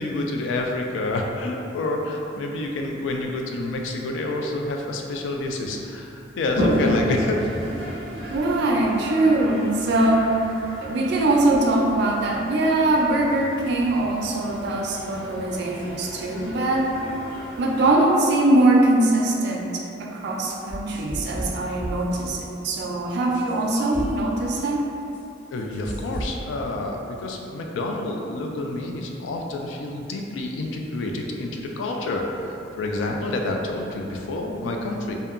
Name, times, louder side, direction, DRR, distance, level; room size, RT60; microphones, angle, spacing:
voice 1, 0.0-7.4 25.5-35.1, left 2 dB, 75° left, 1 dB, 0.3 m, -28 dB
Toilet flush, 6.4-17.9, equal, 55° left, 0.9 m, -32 dB
voice 2, 8.3-10.3 10.8-16.9 17.6-24.8, right 2 dB, 60° right, -1 dB, 0.3 m, -22 dB
sound 1, 20.7-22.2 22.7-22.8 23.3-24.1 24.5-24.6 25.1-25.2 25.7-26.3, equal, 15° left, 1.1 m, -32 dB
2.7 x 2.2 x 2.4 m, 2.7 s
head